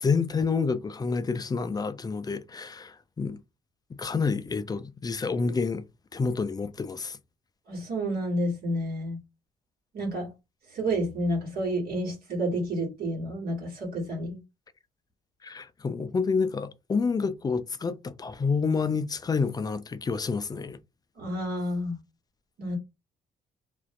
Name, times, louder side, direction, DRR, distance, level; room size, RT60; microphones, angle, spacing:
voice 1, 0.0-3.4 4.0-5.8 6.1-7.2 15.4-20.8, left 4 dB, 25° left, 0.3 m, -28 dB
voice 2, 7.7-9.2 9.9-10.3 10.7-14.4 21.2-22.0 22.6-22.8, right 1 dB, 70° right, 1.3 m, -30 dB
2.5 x 2.1 x 2.5 m
supercardioid pair, 70°, 17 cm